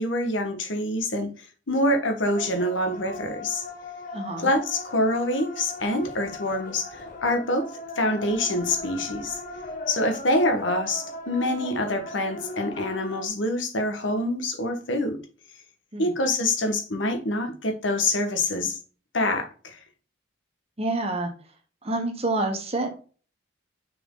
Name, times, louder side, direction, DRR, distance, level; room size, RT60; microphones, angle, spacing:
voice 1, 0.0-3.6 4.4-7.7 7.9-9.4 9.9-15.2 16.0-18.8 19.1-19.8, left 1 dB, 80° left, 1.4 m, -26 dB
sound 1, 2.2-13.3, left 2 dB, 45° left, 1.3 m, -39 dB
voice 2, 4.1-4.5 15.9-16.1 20.8-21.3 21.8-22.9, right 2 dB, 30° right, 1.3 m, -27 dB
6.4 x 4.5 x 3.9 m
head